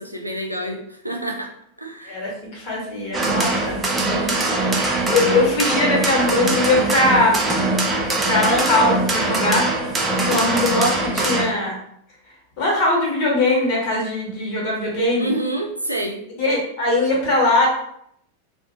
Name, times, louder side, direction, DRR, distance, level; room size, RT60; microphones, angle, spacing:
voice 1, 0.0-1.5 1.8-2.2 15.1-16.2, right 1 dB, 85° right, 2 dB, 0.3 m, -27 dB
voice 2, 2.0-7.5 8.2-9.7 10.2-11.8 12.6-15.3 16.4-17.7, left 2 dB, 40° left, -3 dB, 1.1 m, -21 dB
sound 1, 3.1-11.5, right 2 dB, 15° right, 0.5 m, -22 dB
2.5 x 2.1 x 2.7 m, 0.71 s
figure-of-eight pair, 90°, 0 cm